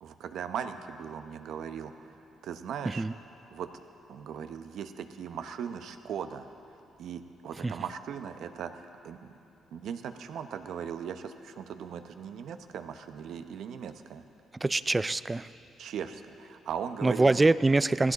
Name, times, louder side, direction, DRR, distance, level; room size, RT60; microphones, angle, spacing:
voice 1, 0.0-1.9 2.4-3.1 3.5-3.7 4.1-6.5 7.0-9.3 9.7-14.2 15.8-17.4, right 8 dB, 75° right, 8 dB, 0.8 m, -38 dB
voice 2, 14.5-15.5 17.0-18.1, right 2 dB, 20° right, 16 dB, 0.3 m, -25 dB
17.5 x 15.5 x 4.0 m, 2.8 s
cardioid pair, 90°, 0 cm